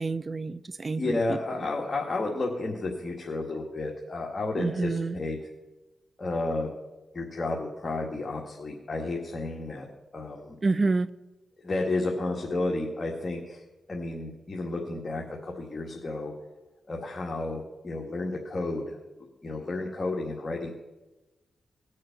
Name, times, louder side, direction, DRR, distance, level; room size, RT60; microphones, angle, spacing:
voice 1, 0.0-1.4 4.6-5.2 10.6-11.1, right 3 dB, 40° right, 16 dB, 0.6 m, -28 dB
voice 2, 1.0-5.4 6.2-6.7 7.1-9.9 10.1-10.6 11.6-13.6 13.9-16.3 16.9-19.0 19.4-20.7, left 2 dB, 40° left, -1 dB, 1.9 m, -32 dB
19.5 x 6.6 x 5.9 m, 1.1 s
cardioid pair, 65°, 0 cm